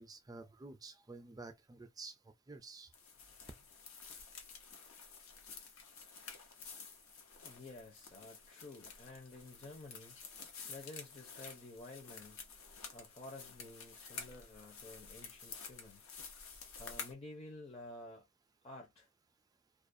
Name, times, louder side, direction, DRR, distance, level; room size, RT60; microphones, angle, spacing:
voice 1, 0.0-2.1 2.5-2.9, right 3 dB, 20° right, 0.3 m, -50 dB
sound 1, 2.9-17.1, left 5 dB, 75° left, 0.7 m, -51 dB
voice 2, 7.4-10.4 10.7-12.4 12.9-16.0 16.8-18.2 18.6-19.1, left 2 dB, 30° left, 0.6 m, -52 dB
2.4 x 2.1 x 2.5 m
head